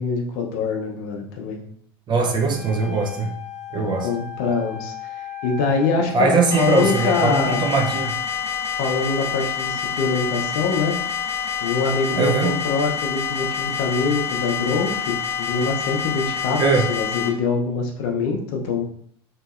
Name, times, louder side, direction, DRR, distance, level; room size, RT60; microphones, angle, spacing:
voice 1, 0.0-1.6 3.8-7.7 8.7-11.0 11.6-18.8, left 4 dB, 60° left, 2 dB, 0.7 m, -24 dB
Wind instrument woodwind instrument, 2.1-8.1, left 10 dB, 20° right, 0.9 m, -36 dB
voice 2, 2.1-3.3 3.7-4.1 6.1-8.1 12.1-12.5 16.6-16.9, right 4 dB, 35° right, 2 dB, 0.6 m, -21 dB
sound 1, 6.5-17.3, left 7 dB, 20° left, 0.5 m, -27 dB
2.8 x 2.6 x 2.4 m, 0.62 s
hypercardioid pair, 75°, 13 cm